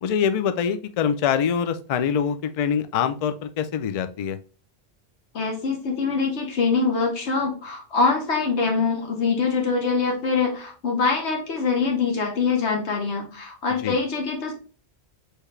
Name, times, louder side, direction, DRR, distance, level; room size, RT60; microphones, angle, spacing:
voice 1, 0.0-4.4 13.8-14.0, left 7 dB, 65° left, 10 dB, 0.3 m, -24 dB
voice 2, 5.3-14.5, left 4 dB, 85° left, 1 dB, 1.3 m, -24 dB
4.7 x 3.3 x 3.1 m, 0.38 s
omnidirectional pair, 1.1 m